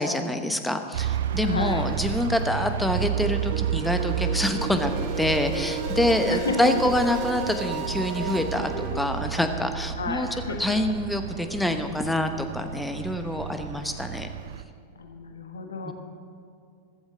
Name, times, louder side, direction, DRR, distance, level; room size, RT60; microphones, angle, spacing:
voice 1, 0.0-4.9 5.2-10.3 10.6-14.3 15.8-15.9, left 1 dB, 5° left, 7 dB, 1.0 m, -26 dB
sound 1, 0.9-14.6, right 9 dB, 60° right, 0.6 m, -32 dB
voice 2, 1.4-1.8 6.2-6.7 10.0-10.6 15.0-15.9, left 4 dB, 70° left, 5 dB, 1.4 m, -31 dB
sound 2, 3.0-9.0, right 3 dB, 40° right, 2.0 m, -33 dB
15.5 x 15.0 x 3.8 m, 2.5 s
figure-of-eight pair, 90°, 0 cm